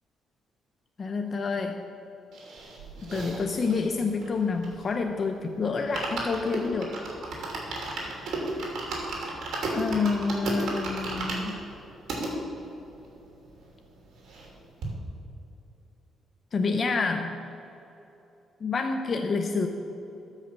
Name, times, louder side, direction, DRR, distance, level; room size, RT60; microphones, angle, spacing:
voice 1, 1.0-1.8 3.0-7.0 9.7-11.6 16.5-17.4 18.6-19.7, left 4 dB, 40° left, 5 dB, 0.7 m, -28 dB
sound 1, 2.3-5.1 5.4-5.5 5.8-12.3 12.9-13.0 13.2-13.3 13.6-14.5 14.8-14.9, right 2 dB, 70° right, 2.8 m, -34 dB
13.0 x 5.7 x 6.9 m, 2.9 s
cardioid pair, 90°, 0 cm